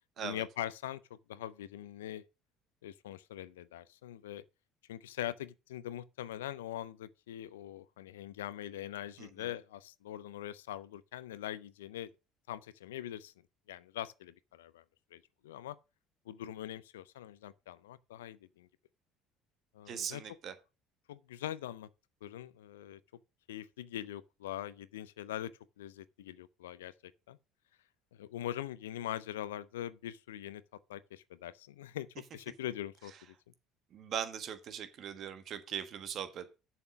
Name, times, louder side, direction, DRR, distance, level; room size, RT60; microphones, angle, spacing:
voice 1, 0.2-1.0 1.3-2.2 2.8-4.4 4.9-12.1 12.5-13.3 13.7-14.8 15.1-15.8 16.3-18.7 19.7-20.2 21.1-21.9 22.2-23.0 23.5-27.4 28.2-30.6 30.9-33.1, left 12 dB, 85° left, 0.5 m, -42 dB
voice 2, 9.2-9.5 19.9-20.5 33.9-36.6, right 8 dB, 55° right, 1.4 m, -40 dB
7.1 x 6.0 x 6.0 m
hypercardioid pair, 65°, 0 cm